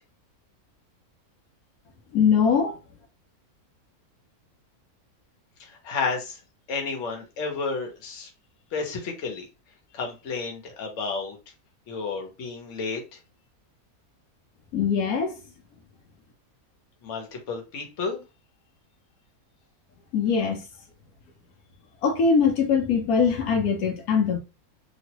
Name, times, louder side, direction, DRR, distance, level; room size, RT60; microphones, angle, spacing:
voice 1, 2.1-2.8 14.7-15.4 20.1-20.6 22.0-24.4, left 6 dB, 80° left, 1.1 m, -22 dB
voice 2, 5.6-6.4 6.7-8.3 8.7-9.5 9.9-11.4 11.9-13.2 17.0-18.2, left 4 dB, 55° left, 1.2 m, -31 dB
3.0 x 2.5 x 2.9 m
omnidirectional pair, 1.6 m